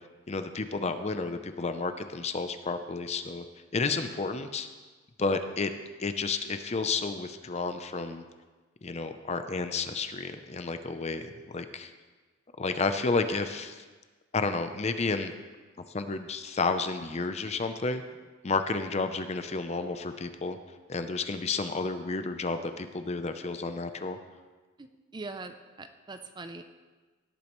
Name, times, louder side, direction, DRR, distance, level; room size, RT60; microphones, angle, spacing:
voice 1, 0.3-3.4 3.7-4.7 5.2-5.7 6.0-8.2 8.8-11.9 12.6-13.8 14.3-15.3 15.9-18.0 18.4-20.6 20.9-24.2, left 3 dB, 35° left, 9 dB, 0.6 m, -31 dB
voice 2, 24.8-26.6, right 3 dB, 20° right, 8 dB, 0.5 m, -42 dB
17.5 x 8.5 x 3.1 m, 1.3 s
head